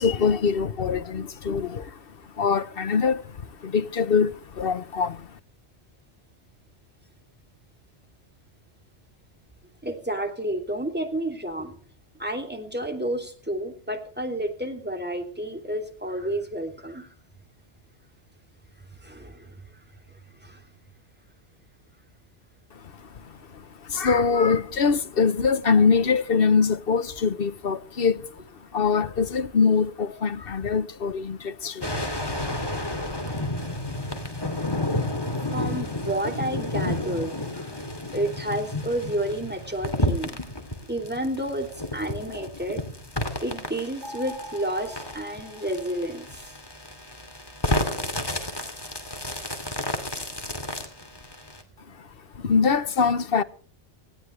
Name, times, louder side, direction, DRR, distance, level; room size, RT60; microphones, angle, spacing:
voice 1, 0.0-2.0 2.4-5.3 23.5-28.3 28.7-32.6 52.3-53.4, left 5 dB, 55° left, 1.1 m, -23 dB
voice 2, 9.8-11.8 12.2-17.1 19.0-19.6 20.4-20.6 35.4-37.8 38.1-40.4 40.9-41.7 41.9-42.8 43.4-46.5, right 1 dB, 10° right, 2.9 m, -30 dB
sound 1, 31.8-51.6, left 1 dB, 20° left, 2.7 m, -31 dB
sound 2, 44.0-46.5, equal, 40° right, 4.3 m, -43 dB
19.5 x 17.0 x 3.3 m
omnidirectional pair, 1.2 m